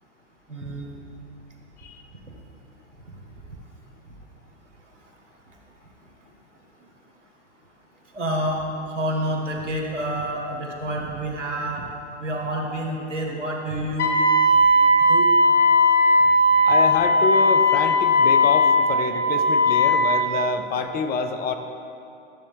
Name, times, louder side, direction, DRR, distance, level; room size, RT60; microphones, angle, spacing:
voice 1, 0.5-0.9 8.1-11.9 12.2-14.1 15.1-15.3, right 1 dB, 85° right, 0 dB, 1.7 m, -28 dB
Wind instrument woodwind instrument, 14.0-20.2, left 1 dB, 80° left, 1.2 m, -18 dB
voice 2, 16.6-21.5, left 5 dB, 25° left, 7 dB, 0.6 m, -27 dB
12.5 x 7.6 x 3.6 m, 2.7 s
hypercardioid pair, 100°, 35 cm